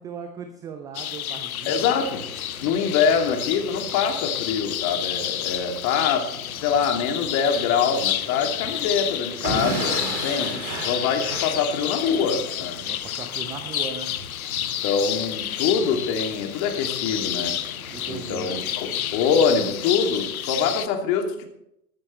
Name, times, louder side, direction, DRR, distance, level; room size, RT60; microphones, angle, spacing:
voice 1, 0.0-2.0 2.5-2.7 12.8-14.1 17.9-18.6, right 6 dB, 10° right, 7 dB, 0.4 m, -38 dB
sound 1, 0.9-20.9, left 11 dB, 65° left, 0.8 m, -30 dB
sound 2, 1.6-19.8, right 1 dB, 80° right, 4.4 m, -46 dB
voice 2, 1.7-2.2 2.6-6.3 6.6-12.8 14.8-17.6 18.1-21.5, left 6 dB, 35° left, 4 dB, 2.7 m, -24 dB
Explosion / Shatter, 9.4-12.2, right 3 dB, 50° right, 3.8 m, -31 dB
14.0 x 13.5 x 3.2 m, 0.77 s
figure-of-eight pair, 110°, 47 cm